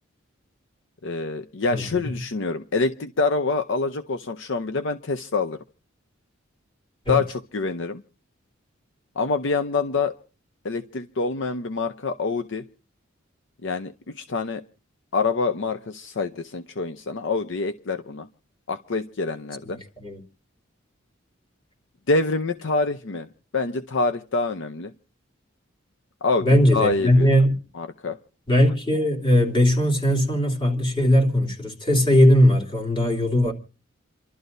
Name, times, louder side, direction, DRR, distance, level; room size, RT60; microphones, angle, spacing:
voice 1, 1.0-5.6 7.1-8.0 9.2-10.2 10.6-12.6 13.6-14.6 15.1-18.3 18.7-19.8 22.1-23.3 23.5-24.9 26.2-27.3 27.7-28.2, left 3 dB, 65° left, 0.7 m, -26 dB
voice 2, 1.7-2.1 7.0-7.2 20.0-20.2 26.4-27.5 28.5-33.5, equal, 25° left, 2.9 m, -19 dB
29.0 x 12.5 x 2.7 m
head